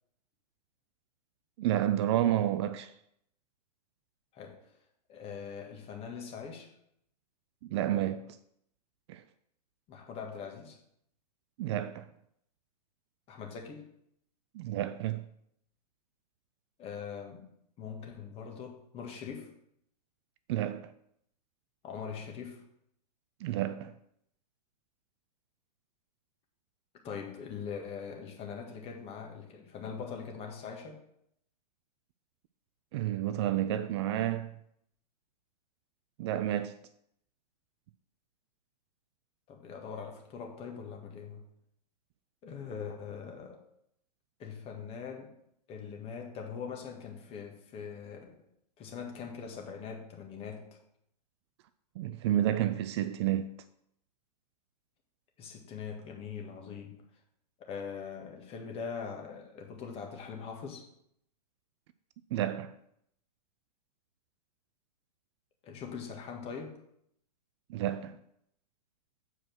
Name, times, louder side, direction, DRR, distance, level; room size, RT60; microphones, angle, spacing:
voice 1, 1.6-2.9 7.6-8.4 9.1-9.2 11.6-12.1 14.5-15.3 20.5-20.9 23.4-23.9 32.9-34.5 36.2-36.8 52.0-53.6 62.3-62.7 67.7-68.2, right 12 dB, 40° right, 0.4 m, -30 dB
voice 2, 5.1-6.7 9.9-10.8 13.3-13.9 16.8-19.5 21.8-22.6 27.0-31.0 39.5-41.5 42.4-43.6 44.4-45.4 45.7-48.2 48.8-50.8 55.4-57.0 57.6-60.9 65.6-66.8, left 6 dB, 25° left, 1.8 m, -42 dB
7.4 x 4.9 x 6.2 m
figure-of-eight pair, 110°, 21 cm